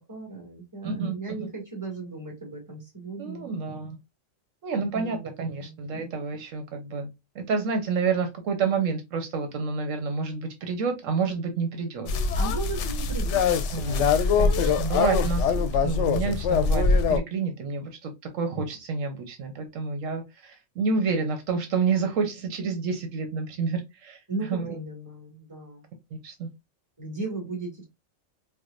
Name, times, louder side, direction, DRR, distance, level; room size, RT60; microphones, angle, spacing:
voice 1, 0.1-3.5 4.7-6.1 12.3-14.2 24.3-25.9 27.0-27.8, right 3 dB, 15° right, 1.9 m, -37 dB
voice 2, 0.8-1.5 3.2-4.0 4.6-7.1 7.3-12.1 13.7-14.1 14.4-24.2 24.5-24.8 26.2-26.5, right 5 dB, 80° right, 1.1 m, -29 dB
sound 1, 12.1-17.2, left 5 dB, 70° left, 0.8 m, -23 dB
4.6 x 2.2 x 2.4 m
omnidirectional pair, 1.3 m